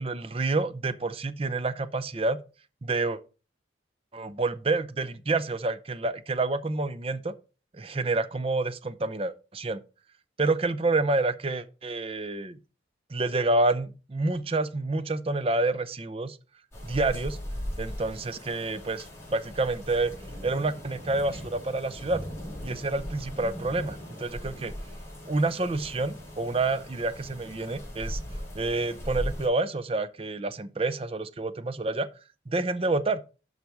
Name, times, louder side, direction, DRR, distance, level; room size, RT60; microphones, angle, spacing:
voice 1, 0.0-2.4 2.8-3.2 4.1-7.3 7.7-9.8 10.4-12.6 13.1-16.4 16.8-17.4 17.8-19.1 19.3-20.1 20.4-22.2 22.6-24.7 25.2-28.2 28.6-32.1 32.5-33.2, right 2 dB, 30° right, 0.6 m, -28 dB
sound 1, 16.7-29.5, equal, 15° left, 3.7 m, -39 dB
11.5 x 4.1 x 4.6 m
head